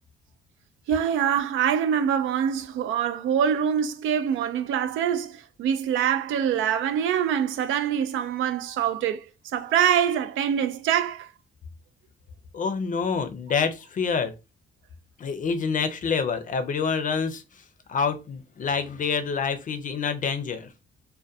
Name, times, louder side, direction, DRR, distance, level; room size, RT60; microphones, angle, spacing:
voice 1, 0.9-11.3, right 9 dB, 80° right, 0.4 m, -24 dB
voice 2, 12.5-14.3 15.2-17.6 17.9-20.7, left 5 dB, 40° left, 0.5 m, -27 dB
2.3 x 2.1 x 2.6 m
cardioid pair, 90°, 20 cm